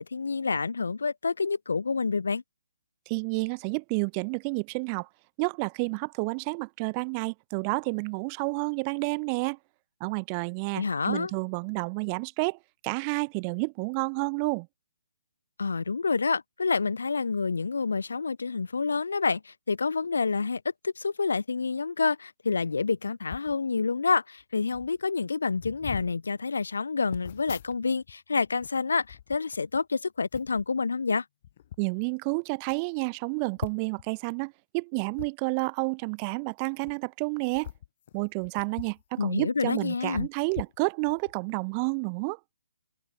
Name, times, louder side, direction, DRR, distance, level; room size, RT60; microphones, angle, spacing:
voice 1, 0.0-2.4 10.7-11.3 15.6-31.2 39.2-40.3, left 4 dB, 65° left, 0.7 m, -28 dB
voice 2, 3.1-5.1 5.4-9.6 10.0-12.6 12.8-14.7 31.8-37.7 38.1-42.4, right 35 dB, 25° right, 0.9 m, -30 dB
sound 1, 23.3-23.6 24.4-24.5 24.7-25.0 25.6-26.1 27.1-28.1 28.4-29.8 30.3-30.7 31.4-31.8 32.4-32.5 32.7-32.8 33.6-34.1 35.1-35.3 36.7-36.9 37.5-39.0 39.3-39.4 40.1-41.3 41.8-42.0, left 11 dB, 40° left, 1.7 m, -42 dB
figure-of-eight pair, 135°, 0 cm